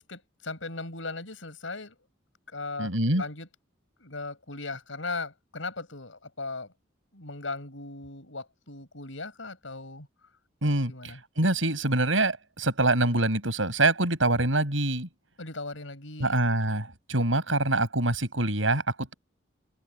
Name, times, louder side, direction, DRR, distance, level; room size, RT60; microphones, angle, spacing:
voice 1, 0.0-2.0 2.5-3.5 4.0-6.7 7.1-10.1 10.9-11.2 15.4-16.3, left 3 dB, 80° left, 6.3 m, -38 dB
voice 2, 2.8-3.2 10.6-15.1 16.2-19.1, right 2 dB, 80° right, 7.9 m, -25 dB
head